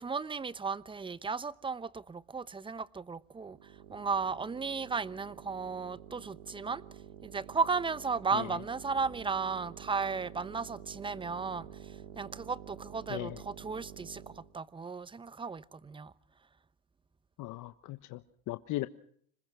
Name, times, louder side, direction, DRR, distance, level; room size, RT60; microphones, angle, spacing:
voice 1, 0.0-6.8 7.2-16.1, right 5 dB, 10° right, 0.9 m, -35 dB
sound 1, 3.3-14.5, right 9 dB, 70° right, 3.1 m, -49 dB
voice 2, 17.4-18.2 18.5-18.9, left 17 dB, 45° left, 1.2 m, -37 dB
27.0 x 20.5 x 6.2 m
hypercardioid pair, 100°, 42 cm